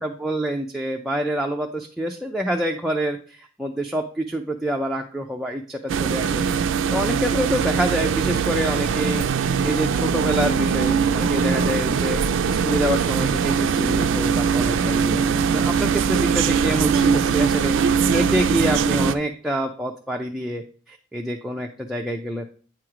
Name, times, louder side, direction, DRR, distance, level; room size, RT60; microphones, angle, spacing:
voice 1, 0.0-6.4 6.9-9.3 9.6-22.5, equal, ahead, 0 dB, 0.4 m, -27 dB
sound 1, 5.9-19.1, right 6 dB, 70° right, 0.4 m, -21 dB
8.5 x 3.1 x 4.8 m, 0.40 s
head